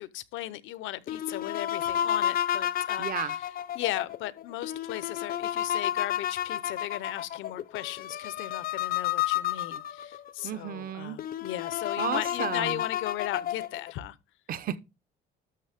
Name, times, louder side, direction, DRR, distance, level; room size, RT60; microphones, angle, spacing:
voice 1, 0.0-3.5 3.7-14.2, left 14 dB, 80° left, 0.8 m, -37 dB
sound 1, 1.1-10.3 10.8-10.9 11.2-13.9, left 11 dB, 50° left, 0.6 m, -31 dB
voice 2, 3.0-3.4 10.4-11.2 12.0-12.8 14.5-14.8, right 9 dB, 45° right, 0.8 m, -33 dB
12.5 x 6.3 x 3.5 m
cardioid pair, 140°, 20 cm